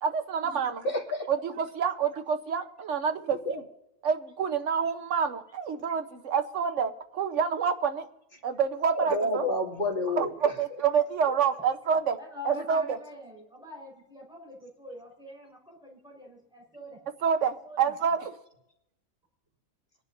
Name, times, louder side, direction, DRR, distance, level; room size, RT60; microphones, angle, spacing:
voice 1, 0.0-0.8 1.3-3.6 4.0-8.1 8.4-9.4 10.2-12.2 12.4-13.0 17.2-18.3, right 7 dB, 65° right, 7 dB, 1.3 m, -28 dB
voice 2, 0.8-1.3 3.4-3.6 8.9-10.3, left 1 dB, 40° left, -2 dB, 2.9 m, -29 dB
voice 3, 12.2-17.0 17.4-17.9, left 2 dB, 5° right, -2 dB, 4.7 m, -45 dB
25.5 x 11.0 x 2.7 m, 0.83 s
omnidirectional pair, 1.4 m